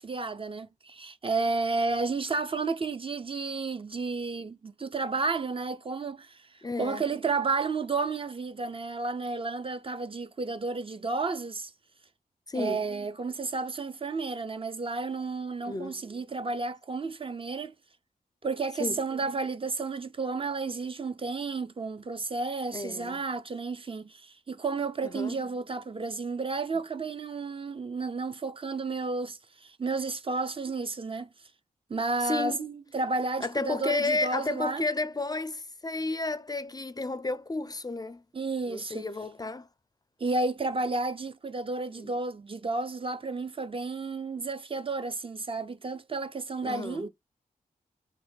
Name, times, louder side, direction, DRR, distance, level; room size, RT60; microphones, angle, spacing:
voice 1, 0.0-6.5 6.8-11.7 12.5-17.7 18.4-31.3 31.9-34.9 38.3-39.1 40.2-47.1, right 3 dB, 35° right, 0.4 m, -32 dB
voice 2, 6.6-7.0 12.5-12.8 15.7-16.0 18.8-19.0 22.7-23.2 25.1-25.4 32.2-32.7 33.4-38.2 38.7-39.7 42.0-42.1 46.6-47.1, left 3 dB, 25° left, 0.4 m, -32 dB
3.2 x 2.1 x 3.0 m
cardioid pair, 60°, 16 cm